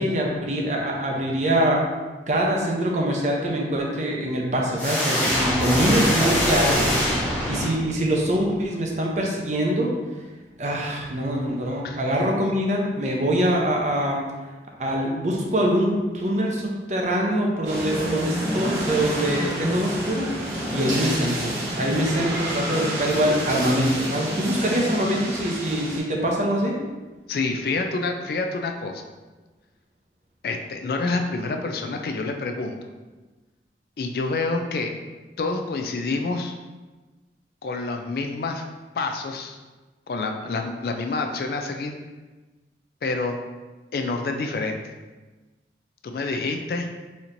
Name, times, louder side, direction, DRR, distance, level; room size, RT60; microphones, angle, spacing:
voice 1, 0.0-1.8 2.3-6.9 7.4-9.9 10.6-14.2 14.8-20.3 20.7-26.8, equal, 40° right, -1 dB, 0.6 m, -24 dB
sound 1, 4.8-8.1, equal, 10° left, 0.7 m, -23 dB
sound 2, 17.6-26.0, right 1 dB, 80° right, 1.0 m, -28 dB
voice 2, 27.3-29.0 30.4-32.8 34.0-34.9 35.4-36.6 37.6-38.6 38.9-39.6 40.1-41.9 43.0-43.4 43.9-44.9 46.0-46.9, left 3 dB, 55° left, 4 dB, 0.3 m, -27 dB
4.2 x 2.9 x 2.6 m, 1.2 s
head